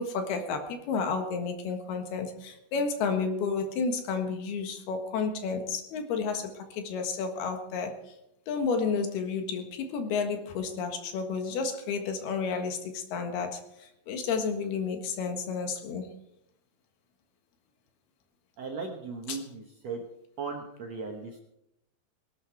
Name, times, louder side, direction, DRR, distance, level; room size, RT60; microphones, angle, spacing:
voice 1, 0.0-8.0 8.5-13.6 14.1-16.1 19.3-19.4, left 5 dB, 75° left, 6 dB, 3.5 m, -31 dB
voice 2, 18.6-20.0 20.4-21.4, right 4 dB, 60° right, 2 dB, 1.7 m, -37 dB
19.0 x 12.5 x 4.6 m, 0.80 s
omnidirectional pair, 4.6 m